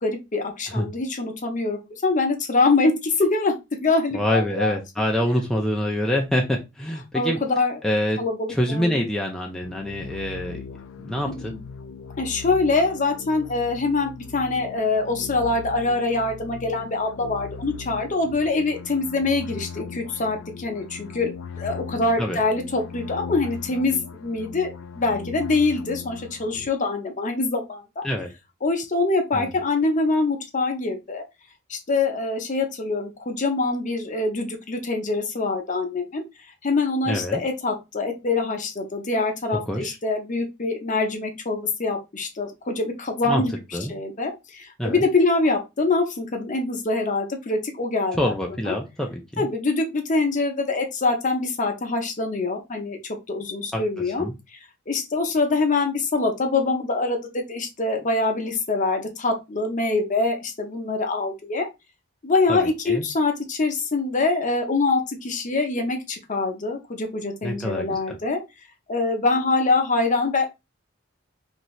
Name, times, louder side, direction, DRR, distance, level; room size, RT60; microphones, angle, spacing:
voice 1, 0.0-3.5 3.8-4.8 7.1-7.8 8.2-9.0 11.3-11.6 12.2-28.0 28.6-31.2 31.7-36.2 36.6-43.5 43.9-48.3 48.7-48.8 49.4-53.0 53.3-54.2 54.9-61.7 62.2-68.4 68.9-70.5, left 3 dB, 40° left, 4 dB, 0.7 m, -24 dB
voice 2, 4.1-7.4 7.8-8.2 8.5-10.6 11.0-11.5 22.2-22.4 28.0-28.3 29.3-29.5 37.1-37.4 39.7-40.0 43.2-43.4 43.7-43.9 44.8-45.0 48.1-49.5 53.7-53.8 54.2-54.3 62.5-63.0 67.4-68.2, left 1 dB, 5° left, -1 dB, 0.4 m, -26 dB
sound 1, 9.6-26.7, left 5 dB, 80° left, 0.3 m, -39 dB
2.8 x 2.6 x 3.1 m, 0.23 s
head